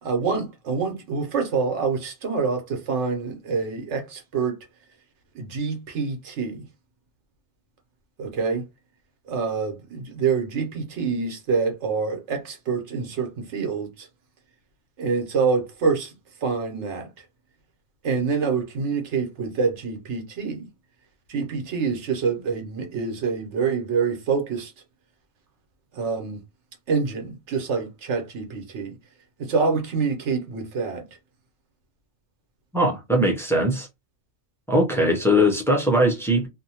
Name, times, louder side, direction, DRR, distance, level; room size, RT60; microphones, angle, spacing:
voice 1, 0.0-4.6 5.3-6.7 8.2-8.6 9.3-14.1 15.0-16.1 16.4-17.1 18.0-20.7 21.3-24.7 25.9-26.4 26.9-29.0 29.4-31.1, right 5 dB, 85° right, 1.1 m, -26 dB
voice 2, 32.7-33.9 34.7-36.5, equal, 5° left, 0.4 m, -20 dB
2.7 x 2.1 x 2.8 m
omnidirectional pair, 1.2 m